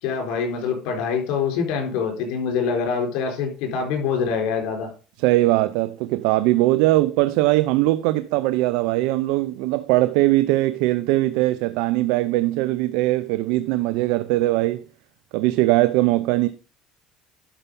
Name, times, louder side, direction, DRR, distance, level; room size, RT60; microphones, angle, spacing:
voice 1, 0.0-4.9, left 6 dB, 75° left, 4.3 m, -25 dB
voice 2, 5.2-14.8 15.3-16.5, right 18 dB, 80° right, 0.5 m, -20 dB
11.5 x 5.6 x 5.3 m
cardioid pair, 120°, 0 cm